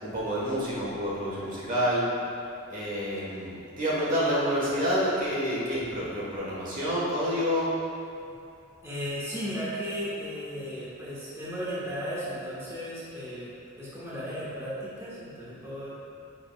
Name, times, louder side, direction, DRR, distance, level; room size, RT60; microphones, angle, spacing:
voice 1, 0.0-2.0 2.7-7.7, equal, 45° right, -7 dB, 1.5 m, -28 dB
voice 2, 8.8-13.5 13.8-15.9, equal, 15° right, -10 dB, 1.4 m, -35 dB
9.5 x 5.0 x 2.4 m, 2.6 s
head